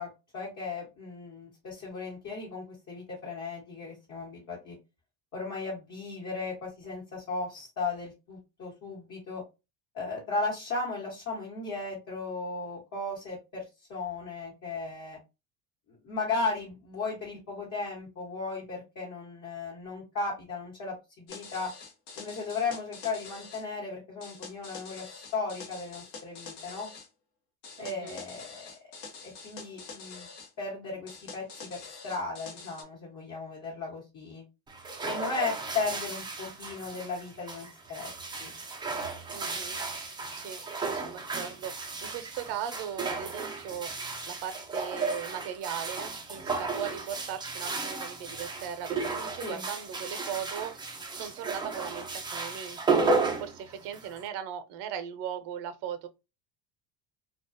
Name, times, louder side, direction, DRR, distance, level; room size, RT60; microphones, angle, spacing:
voice 1, 0.0-4.8 5.3-9.4 9.9-13.6 13.9-15.2 16.0-21.7 22.2-26.9 27.8-28.7 29.2-30.3 30.6-34.4 35.0-38.1 38.4-38.5 49.4-49.6, left 3 dB, 40° left, 1.1 m, -36 dB
sound 1, 21.3-23.6 24.2-27.1 27.6-30.5 31.1-32.8, left 4 dB, 65° left, 0.9 m, -46 dB
voice 2, 27.8-28.2 39.3-39.9 40.3-50.8 51.1-53.0 53.4-56.1, right 9 dB, 65° right, 0.6 m, -38 dB
sound 2, 34.7-54.3, right 4 dB, 10° right, 0.3 m, -34 dB
2.3 x 2.2 x 2.5 m
supercardioid pair, 105°, 44 cm